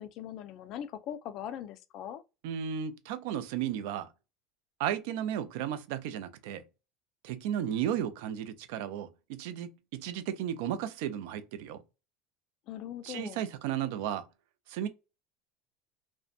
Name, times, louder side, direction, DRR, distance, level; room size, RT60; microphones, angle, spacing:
voice 1, 0.0-2.2 12.7-13.4, left 10 dB, 40° left, 0.3 m, -40 dB
voice 2, 2.4-4.1 4.8-6.6 7.2-11.8 13.0-14.3 14.7-14.9, right 10 dB, 65° right, 0.4 m, -34 dB
2.6 x 2.1 x 2.4 m
cardioid pair, 165°, 0 cm